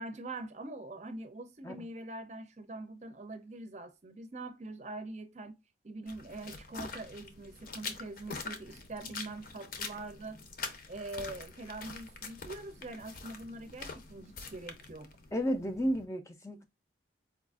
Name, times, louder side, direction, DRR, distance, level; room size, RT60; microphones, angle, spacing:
voice 1, 0.0-5.6 5.8-10.4 10.9-15.1, right 2 dB, 35° right, 0.5 m, -43 dB
sound 1, 6.1-16.1, left 4 dB, 50° left, 0.7 m, -45 dB
voice 2, 15.3-16.6, equal, 15° left, 0.4 m, -33 dB
4.6 x 2.5 x 2.3 m
head